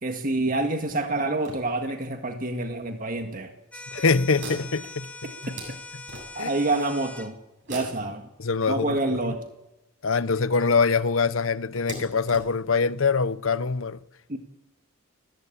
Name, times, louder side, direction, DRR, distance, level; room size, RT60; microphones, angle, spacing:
voice 1, 0.0-3.8 6.3-7.3 7.7-8.2 8.7-9.5 14.3-14.4, right 2 dB, 40° right, 1.8 m, -27 dB
sound 1, 0.9-2.2 3.0-3.1 3.4-3.6 4.3-6.7 7.6-9.3 10.4-10.5 10.8-10.9 11.7-13.4, right 2 dB, 60° right, 7.8 m, -43 dB
sound 2, 3.7-7.3, left 3 dB, 5° left, 1.4 m, -42 dB
voice 2, 3.9-5.6 6.4-6.5 8.4-9.3 10.0-14.0, left 4 dB, 75° left, 0.8 m, -24 dB
29.0 x 15.5 x 8.7 m
head